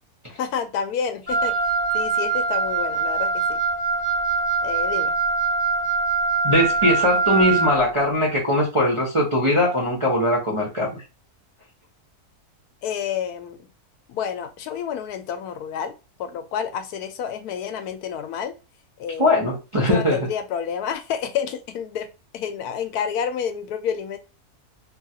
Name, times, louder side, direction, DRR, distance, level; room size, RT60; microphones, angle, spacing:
voice 1, 0.3-1.5 1.9-3.6 4.6-5.1 12.8-13.6 14.1-15.9 16.2-18.5 19.0-19.4 19.9-22.1 22.3-24.2, left 7 dB, 85° left, 1.1 m, -29 dB
Wind instrument woodwind instrument, 1.3-7.7, right 4 dB, 15° left, 1.2 m, -23 dB
voice 2, 6.4-10.9 19.2-20.2, left 1 dB, 30° right, 0.6 m, -20 dB
3.0 x 2.3 x 2.6 m
omnidirectional pair, 1.6 m